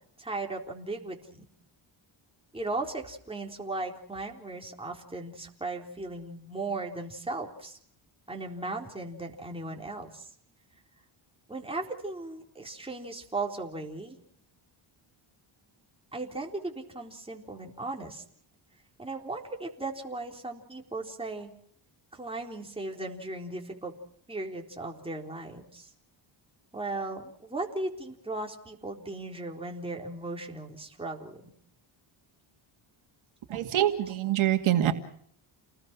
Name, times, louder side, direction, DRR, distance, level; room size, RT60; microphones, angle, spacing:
voice 1, 0.2-1.4 2.5-7.8 8.3-10.3 11.5-14.2 16.1-18.2 19.0-21.5 22.1-24.0 24.3-25.9 26.7-31.4 34.1-34.2, right 2 dB, 10° right, 1 dB, 3.9 m, -37 dB
voice 2, 33.5-34.9, right 12 dB, 75° right, 5 dB, 2.3 m, -25 dB
30.0 x 20.0 x 6.1 m, 0.66 s
cardioid pair, 125°, 49 cm